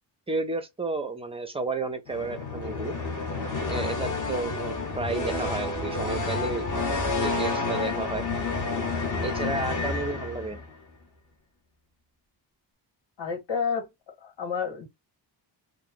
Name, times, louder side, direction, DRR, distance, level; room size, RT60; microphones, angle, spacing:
voice 1, 0.3-2.9 3.7-6.7 7.1-8.2 9.2-10.6, right 3 dB, 15° right, 0.3 m, -32 dB
sound 1, 2.1-10.7, left 3 dB, 40° left, 0.9 m, -29 dB
voice 2, 13.2-13.9 14.2-14.9, left 6 dB, 65° left, 1.8 m, -30 dB
3.0 x 2.0 x 3.5 m
wide cardioid pair, 180°, 46 cm